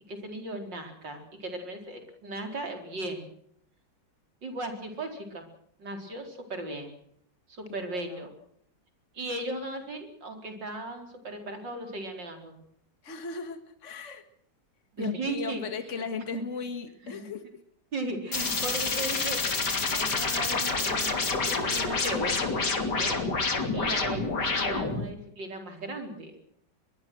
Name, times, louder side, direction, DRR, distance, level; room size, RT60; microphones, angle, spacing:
voice 1, 0.1-3.3 4.4-5.5 5.8-6.9 7.5-8.3 9.1-12.5 14.9-15.6 15.9-16.0 16.3-16.4 17.0-17.3 17.9-22.4 23.0-23.2 23.5-26.3, right 2 dB, 85° right, 5 dB, 5.0 m, -37 dB
voice 2, 7.7-8.2 13.0-14.2 15.0-17.4, left 5 dB, 40° left, 8 dB, 2.2 m, -37 dB
sound 1, 18.3-25.1, left 3 dB, 65° left, 3.3 m, -28 dB
23.0 x 22.5 x 6.3 m, 0.69 s
omnidirectional pair, 1.9 m